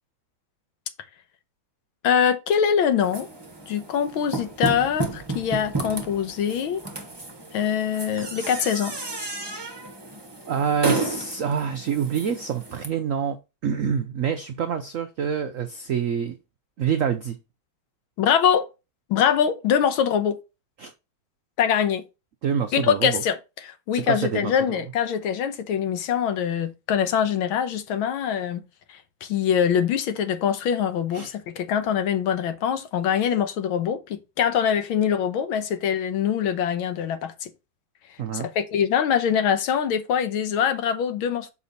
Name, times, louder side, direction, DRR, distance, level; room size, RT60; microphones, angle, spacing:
voice 1, 2.0-3.3 3.7-6.8 7.5-9.0 18.2-18.7 19.1-20.4 21.6-22.0 22.7-23.4 23.9-28.6 28.9-37.5 38.3-41.5, left 8 dB, 85° left, 1.7 m, -23 dB
sound 1, 3.0-12.9, right 3 dB, 20° right, 0.7 m, -32 dB
voice 2, 10.5-16.4 16.8-17.4 20.8-20.9 22.4-23.2 23.9-24.8 31.1-31.3 38.2-38.5, right 7 dB, 90° right, 0.7 m, -27 dB
7.0 x 4.9 x 4.0 m
omnidirectional pair, 2.2 m